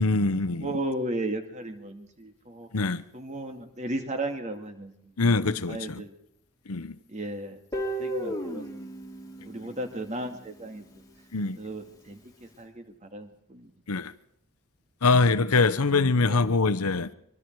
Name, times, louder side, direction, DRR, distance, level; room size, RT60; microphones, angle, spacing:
voice 1, 0.0-0.7 2.7-3.0 5.2-6.0 6.7-6.9 11.3-11.6 13.9-14.1 15.0-17.1, left 3 dB, 80° left, 0.9 m, -23 dB
voice 2, 0.5-2.7 3.1-5.1 5.7-6.1 7.1-8.7 9.4-11.0 11.6-13.7 16.2-16.4, right 1 dB, 30° right, 2.3 m, -35 dB
Guitar, 7.7-10.7, right 1 dB, 15° left, 2.4 m, -35 dB
24.5 x 23.5 x 4.7 m
head